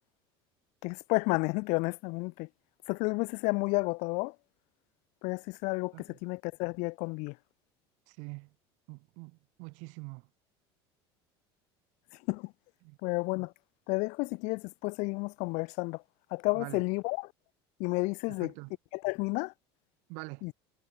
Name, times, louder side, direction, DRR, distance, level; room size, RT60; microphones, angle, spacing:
voice 1, 0.8-2.5 2.9-4.3 5.2-7.3 12.3-12.5 13.0-13.5 13.9-16.0 16.3-17.3 17.8-18.5 18.9-19.5 20.4-20.5, left 28 dB, 65° left, 0.6 m, -31 dB
voice 2, 8.1-8.5 8.9-10.3 12.8-13.0 16.5-16.8 18.3-18.8 20.1-20.5, right 32 dB, 70° right, 1.6 m, -44 dB
hypercardioid pair, 90°, 13 cm